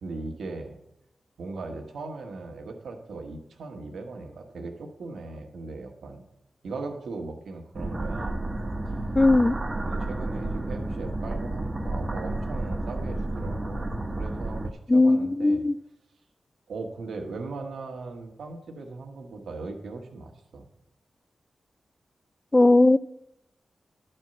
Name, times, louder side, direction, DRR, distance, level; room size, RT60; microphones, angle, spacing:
voice 1, 0.0-0.8 1.4-6.2 6.6-8.4 9.8-15.7 16.7-20.7, right 3 dB, 90° right, 4 dB, 1.2 m, -38 dB
sound 1, 7.7-14.7, right 2 dB, 30° right, 1.0 m, -31 dB
voice 2, 9.2-9.5 14.9-15.8 22.5-23.0, left 2 dB, 30° left, 19 dB, 0.3 m, -18 dB
11.0 x 4.4 x 7.6 m, 0.86 s
cardioid pair, 55°, 0 cm